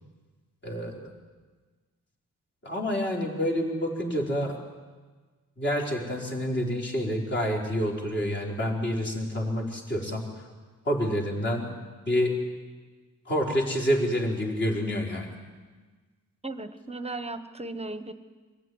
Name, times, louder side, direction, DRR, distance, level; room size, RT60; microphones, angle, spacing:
voice 1, 0.6-1.0 2.6-4.5 5.6-10.5 10.8-11.7 12.1-12.4 13.2-15.3, equal, 35° left, -1 dB, 4.9 m, -28 dB
voice 2, 16.4-18.1, right 2 dB, 20° right, 10 dB, 1.1 m, -36 dB
24.5 x 15.0 x 9.7 m, 1.4 s
cardioid pair, 120°, 33 cm